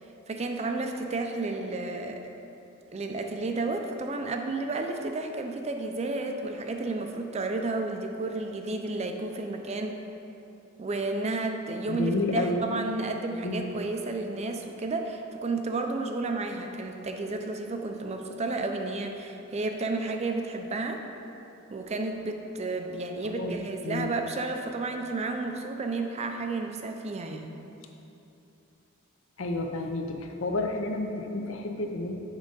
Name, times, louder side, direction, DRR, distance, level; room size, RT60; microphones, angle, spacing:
voice 1, 0.3-2.2 2.9-10.0 10.8-21.0 21.7-27.5, right 3 dB, 30° right, 4 dB, 0.4 m, -32 dB
voice 2, 11.9-12.6 13.4-13.8 23.2-23.6 23.8-24.1 29.4-32.1, left 2 dB, 65° left, 3 dB, 0.6 m, -30 dB
7.3 x 3.7 x 5.2 m, 2.8 s
head